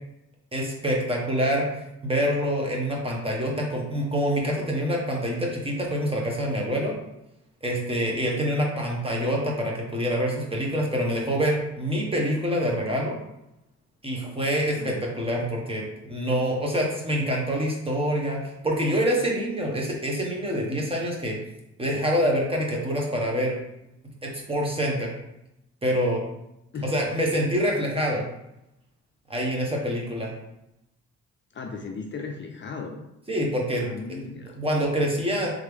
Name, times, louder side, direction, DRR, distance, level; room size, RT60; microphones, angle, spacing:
voice 1, 0.5-6.9 7.6-13.2 14.0-18.4 18.6-21.4 21.8-23.6 24.2-25.1 25.8-26.2 26.8-28.2 29.3-30.3 33.3-33.8 34.6-35.5, equal, 20° right, -1 dB, 1.2 m, -26 dB
voice 2, 14.7-15.0 26.7-26.9 31.5-33.0 33.8-34.5, left 4 dB, 40° left, 2 dB, 0.5 m, -36 dB
3.6 x 3.2 x 3.5 m, 0.87 s
cardioid pair, 90°, 30 cm